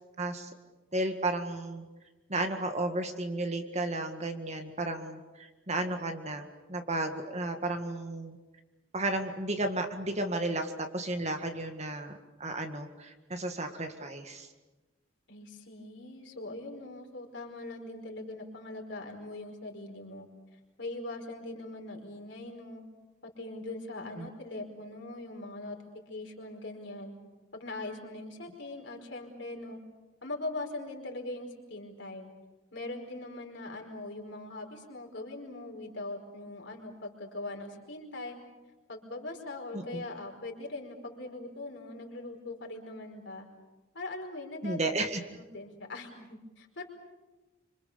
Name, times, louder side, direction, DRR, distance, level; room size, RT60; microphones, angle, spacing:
voice 1, 0.2-0.5 0.9-1.9 2.3-8.4 8.9-14.5 24.2-24.3 39.7-40.0 44.6-45.2, right 2 dB, 35° right, 6 dB, 1.9 m, -33 dB
voice 2, 15.3-20.3 20.5-22.8 23.2-25.8 26.1-27.1 27.5-29.8 30.2-32.3 32.7-38.4 38.9-43.5 43.9-44.9 45.3-46.8, left 2 dB, 60° left, 2 dB, 5.0 m, -41 dB
26.5 x 26.0 x 7.0 m, 1.1 s
head